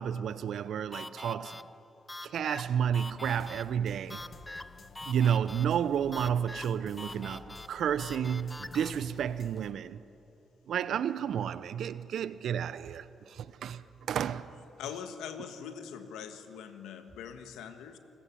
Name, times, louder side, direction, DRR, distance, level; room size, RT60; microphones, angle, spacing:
voice 1, 0.0-1.6 2.2-4.3 5.1-10.0 10.7-14.5, right 8 dB, 75° right, 0.6 m, -31 dB
sound 1, 0.9-8.9, left 1 dB, 15° left, 0.5 m, -45 dB
sound 2, 2.3-3.7 5.3-6.1 7.9-8.0 8.4-9.2 9.5-9.9 13.0-14.1 14.3-14.4 16.3-17.3, right 3 dB, 35° right, 4.5 m, -61 dB
sound 3, 3.2-9.7, left 5 dB, 55° left, 1.2 m, -52 dB
voice 2, 14.8-18.0, left 7 dB, 90° left, 1.3 m, -42 dB
28.5 x 14.5 x 7.2 m
supercardioid pair, 65°, 0 cm